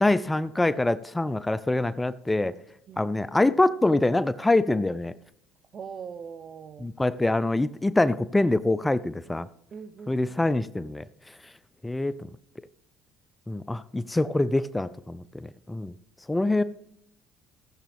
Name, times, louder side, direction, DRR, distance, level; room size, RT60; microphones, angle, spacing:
voice 1, 0.0-2.5 3.0-5.1 6.8-9.5 10.1-11.5 11.8-12.3 13.5-15.9 16.3-16.6, left 2 dB, 10° left, 0.4 m, -25 dB
voice 2, 5.7-6.9 9.7-10.4, right 6 dB, 45° right, 0.8 m, -41 dB
15.5 x 7.0 x 3.5 m
hypercardioid pair, 65°, 0 cm